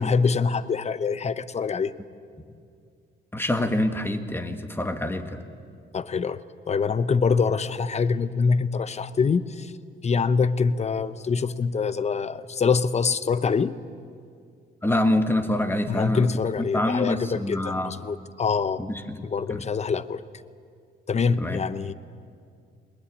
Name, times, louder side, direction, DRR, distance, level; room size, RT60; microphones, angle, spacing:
voice 1, 0.0-1.9 5.9-9.7 10.0-13.7 15.9-18.8 19.2-20.2 21.1-21.9, left 5 dB, 35° left, 15 dB, 0.8 m, -25 dB
voice 2, 3.3-5.4 14.8-16.3 16.6-17.9 18.8-19.2 19.5-19.7 21.4-21.6, left 1 dB, 10° left, 8 dB, 1.6 m, -26 dB
21.0 x 19.5 x 8.7 m, 2.3 s
cardioid pair, 90°, 20 cm